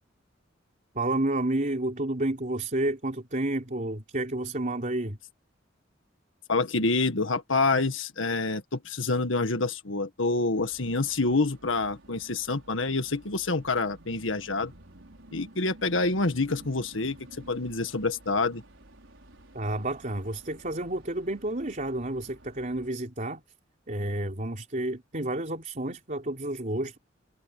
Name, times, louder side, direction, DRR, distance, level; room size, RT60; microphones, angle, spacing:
voice 1, 0.9-5.2 19.5-23.4 23.9-27.0, right 1 dB, 45° right, 3.9 m, -30 dB
voice 2, 6.5-14.7 15.3-17.2 17.5-18.6, left 3 dB, 85° left, 1.7 m, -27 dB
sound 1, 10.6-22.9, right 1 dB, 85° right, 4.8 m, -52 dB
head